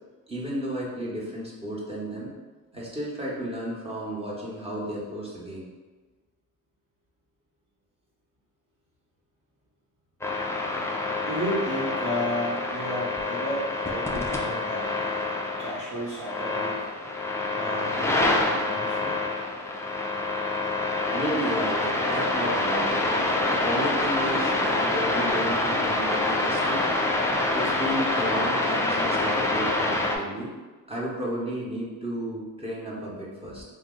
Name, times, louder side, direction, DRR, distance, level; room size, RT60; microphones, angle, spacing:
voice 1, 0.3-2.3 2.7-5.7 21.1-23.1 23.5-26.8 27.5-30.5 30.9-33.6, right 1 dB, 15° right, -5 dB, 1.0 m, -33 dB
sound 1, 10.2-30.2, left 2 dB, 5° left, 0.4 m, -26 dB
voice 2, 11.2-14.9 15.6-16.8 17.5-19.3, equal, 50° right, -8 dB, 1.2 m, -33 dB
2.6 x 2.1 x 3.7 m, 1.3 s
cardioid pair, 80°, 39 cm